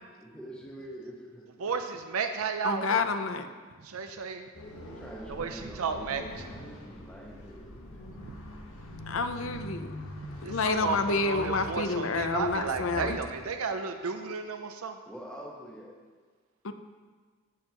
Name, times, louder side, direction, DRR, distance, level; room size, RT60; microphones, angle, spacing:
voice 1, 0.2-1.5 4.7-7.7 14.2-14.4 15.1-15.9, equal, 5° left, -3 dB, 1.3 m, -45 dB
voice 2, 1.6-3.0 3.8-4.4 5.3-6.2 10.4-15.0, right 5 dB, 85° right, 6 dB, 0.6 m, -33 dB
voice 3, 2.6-3.5 9.1-9.9 10.4-13.2 16.6-16.7, left 4 dB, 65° left, 9 dB, 0.7 m, -29 dB
sound 1, 4.5-13.4, equal, 80° left, 1.5 m, -43 dB
15.0 x 7.6 x 3.0 m, 1.5 s
head